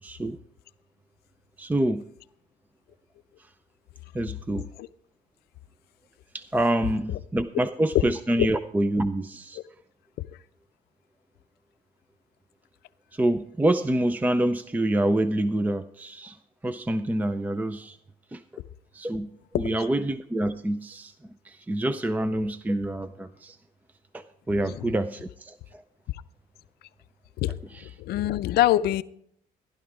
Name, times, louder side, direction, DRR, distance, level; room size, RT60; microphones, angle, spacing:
voice 1, 0.0-0.4 1.6-2.1 4.1-4.7 6.3-9.6 13.1-16.4 16.6-18.0 18.3-18.4 18.9-19.3 19.6-21.1 21.4-23.6 24.1-25.8 27.7-27.8, right 1 dB, 10° right, 0.5 m, -26 dB
voice 2, 19.5-19.9 24.5-24.9 27.4-29.0, left 14 dB, 70° left, 0.5 m, -26 dB
15.0 x 11.5 x 3.6 m
cardioid pair, 110°, 17 cm